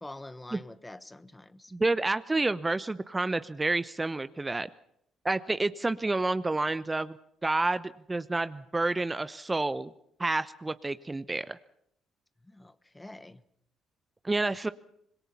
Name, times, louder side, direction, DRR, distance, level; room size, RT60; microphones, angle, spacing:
voice 1, 0.0-1.7 12.4-13.4, left 1 dB, 15° left, 15 dB, 1.2 m, -46 dB
voice 2, 1.7-4.7 5.2-7.2 7.4-9.9 10.2-11.6 14.2-14.7, right 2 dB, 20° right, 14 dB, 0.9 m, -29 dB
25.5 x 22.0 x 5.8 m, 0.71 s
hypercardioid pair, 50°, 0 cm